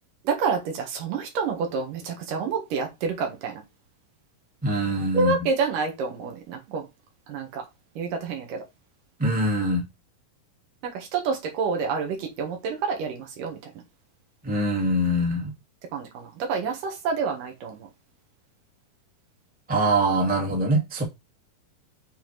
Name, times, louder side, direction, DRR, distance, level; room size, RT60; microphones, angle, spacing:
voice 1, 0.2-3.6 5.1-6.9 7.3-7.6 8.0-8.6 10.8-13.7 15.9-17.9, right 5 dB, 70° right, 3.0 m, -28 dB
voice 2, 4.6-5.3 9.2-9.8 14.4-15.5 19.7-21.0, right 1 dB, 5° right, 1.0 m, -23 dB
7.0 x 3.8 x 4.6 m
omnidirectional pair, 4.3 m